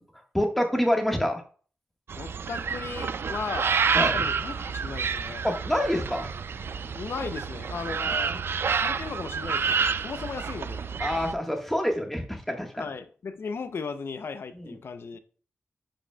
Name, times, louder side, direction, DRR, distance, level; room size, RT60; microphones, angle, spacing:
voice 1, 0.3-1.4 3.9-4.2 5.4-6.3 8.0-8.4 11.0-12.8 14.5-14.8, equal, 5° left, 1.5 m, -27 dB
sound 1, 2.1-11.3, right 6 dB, 65° right, 0.4 m, -29 dB
voice 2, 2.2-3.7 4.1-5.4 6.9-8.3 8.8-10.8 12.7-15.2, left 5 dB, 70° left, 0.7 m, -36 dB
9.9 x 5.2 x 2.3 m
cardioid pair, 75°, 4 cm